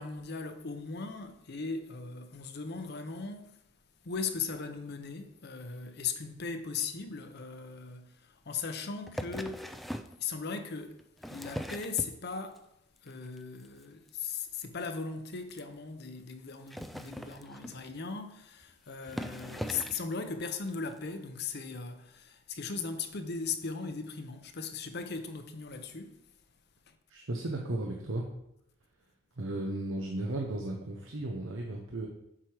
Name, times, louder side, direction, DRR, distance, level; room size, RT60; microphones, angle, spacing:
voice 1, 0.0-3.5 4.0-9.7 10.2-11.0 11.3-12.6 13.0-26.2, left 5 dB, 55° left, 0.8 m, -38 dB
sound 1, 9.1-10.2 11.0-12.6 13.0-13.4 13.6-13.8 14.1-14.2 14.4-14.5 14.8-14.9 15.5-15.6 16.5-17.9 18.6-18.7 19.0-20.1 20.9-21.0, equal, ahead, 0.3 m, -40 dB
voice 2, 27.1-28.2 29.4-32.1, right 1 dB, 75° right, 0.9 m, -35 dB
7.5 x 4.8 x 4.9 m
head